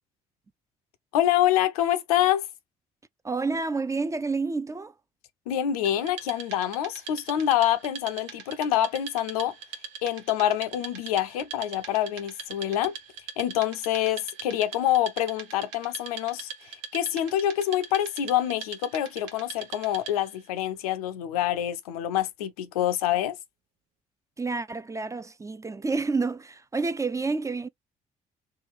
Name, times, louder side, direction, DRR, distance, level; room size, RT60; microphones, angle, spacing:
voice 1, 1.1-2.5 5.5-9.5 10.0-12.9 13.4-16.5 16.9-23.4, left 12 dB, 85° left, 0.4 m, -26 dB
voice 2, 3.2-4.9 24.4-27.7, right 4 dB, 15° right, 0.4 m, -29 dB
Wood, 5.8-20.4, right 6 dB, 75° right, 0.8 m, -42 dB
3.1 x 2.3 x 3.2 m
hypercardioid pair, 45°, 19 cm